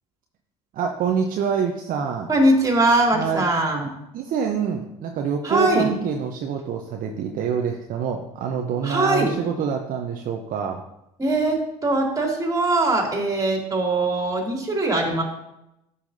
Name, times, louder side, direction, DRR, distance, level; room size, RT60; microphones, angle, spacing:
voice 1, 0.7-2.3 3.1-3.5 4.1-10.8, right 7 dB, 45° right, 3 dB, 0.8 m, -26 dB
voice 2, 2.3-3.9 5.4-5.9 8.8-9.3 11.2-15.2, right 2 dB, 20° right, 0 dB, 2.7 m, -21 dB
13.0 x 5.7 x 2.7 m, 0.85 s
hypercardioid pair, 70°, 19 cm